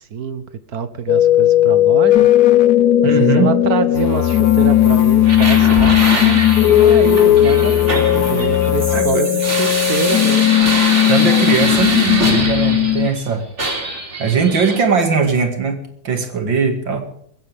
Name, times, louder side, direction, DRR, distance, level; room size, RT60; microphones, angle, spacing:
voice 1, 0.1-0.4 0.7-2.3 3.0-10.5, right 6 dB, 55° right, 12 dB, 1.5 m, -25 dB
sound 1, 1.1-13.1, left 12 dB, 60° left, 1.2 m, -15 dB
voice 2, 3.0-3.5 8.9-9.3 11.1-13.4 14.2-15.8 16.0-17.0, right 5 dB, 85° right, 6 dB, 3.0 m, -19 dB
sound 2, 3.9-9.0, left 8 dB, 45° left, 1.7 m, -24 dB
sound 3, 5.2-13.2 13.6-14.8, right 2 dB, 40° right, 3.7 m, -23 dB
21.5 x 16.0 x 3.6 m, 0.68 s
omnidirectional pair, 2.0 m